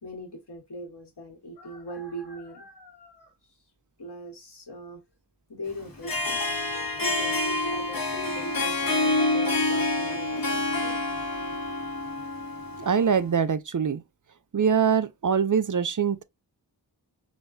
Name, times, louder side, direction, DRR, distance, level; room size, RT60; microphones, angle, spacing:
voice 1, 0.0-3.3 4.0-5.0 5.5-6.4 7.0-11.0, equal, 75° left, 1.4 m, -41 dB
Harp, 5.9-13.2, left 2 dB, 60° left, 1.2 m, -27 dB
voice 2, 12.8-14.0 14.5-16.2, right 7 dB, 50° right, 0.5 m, -23 dB
5.1 x 2.2 x 2.5 m
wide cardioid pair, 45°, 40 cm